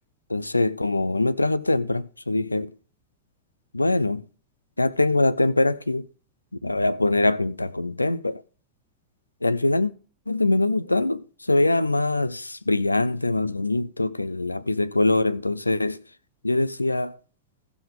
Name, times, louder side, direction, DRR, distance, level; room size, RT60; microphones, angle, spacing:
voice 1, 0.3-2.7 3.7-4.2 4.8-6.1 6.6-8.4 9.4-9.9 10.3-16.0 16.4-17.2, left 2 dB, 85° left, 0.5 m, -23 dB
17.0 x 6.0 x 3.7 m
figure-of-eight pair, 90°, 0 cm